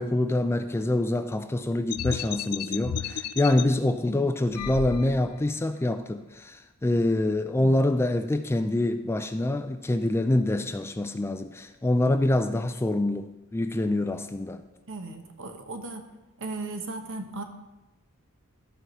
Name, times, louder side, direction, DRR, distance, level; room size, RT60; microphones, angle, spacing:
voice 1, 0.0-14.6, left 1 dB, 10° left, 9 dB, 0.3 m, -26 dB
sound 1, 1.9-3.6 4.5-5.5, left 8 dB, 85° left, 0.4 m, -33 dB
voice 2, 14.9-16.0 16.4-17.4, right 3 dB, 60° right, 6 dB, 1.1 m, -36 dB
13.0 x 4.8 x 5.6 m, 1.0 s
head